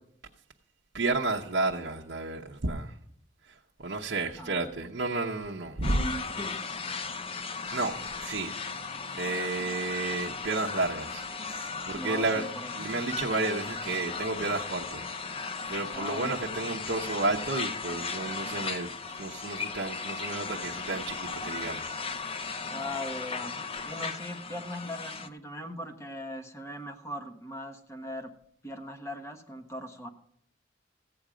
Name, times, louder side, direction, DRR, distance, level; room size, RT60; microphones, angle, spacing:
voice 1, 0.9-2.9 3.8-6.1 7.7-8.5 9.2-12.5 12.8-15.1 15.7-18.9 19.2-22.0 22.4-22.5, right 3 dB, 65° right, 0.8 m, -31 dB
voice 2, 4.3-4.7 11.9-12.8 15.9-16.4 22.7-28.3 28.6-30.1, left 1 dB, 15° left, 1.2 m, -39 dB
sound 1, 5.8-25.3, left 4 dB, 30° left, 0.6 m, -36 dB
15.0 x 8.7 x 5.0 m
head